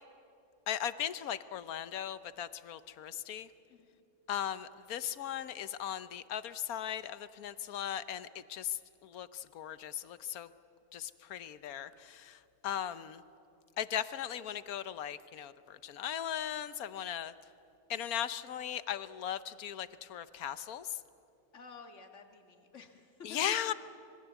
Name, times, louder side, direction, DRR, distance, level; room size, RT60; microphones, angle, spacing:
voice 1, 0.7-3.5 4.3-8.8 9.0-10.5 10.9-12.4 12.6-13.2 13.8-17.3 17.9-20.9 23.2-23.7, left 10 dB, 85° left, 14 dB, 1.3 m, -38 dB
voice 2, 21.5-23.7, left 4 dB, 55° left, 5 dB, 2.1 m, -51 dB
26.0 x 22.0 x 8.2 m, 2.7 s
omnidirectional pair, 1.5 m